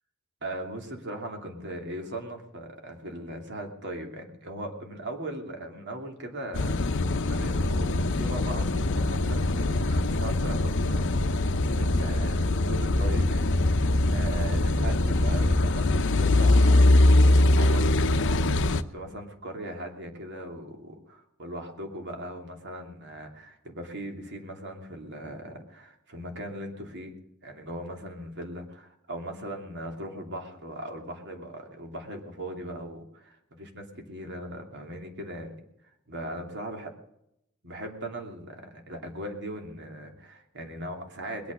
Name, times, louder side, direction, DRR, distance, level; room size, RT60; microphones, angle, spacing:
voice 1, 0.4-27.2 27.4-35.6 36.1-36.9 37.6-41.5, right 1 dB, 55° right, 4 dB, 2.8 m, -39 dB
Car passing by / Idling / Accelerating revving vroom, 6.5-18.8, left 2 dB, 60° left, 0.8 m, -23 dB
21.0 x 8.4 x 6.6 m, 0.80 s
head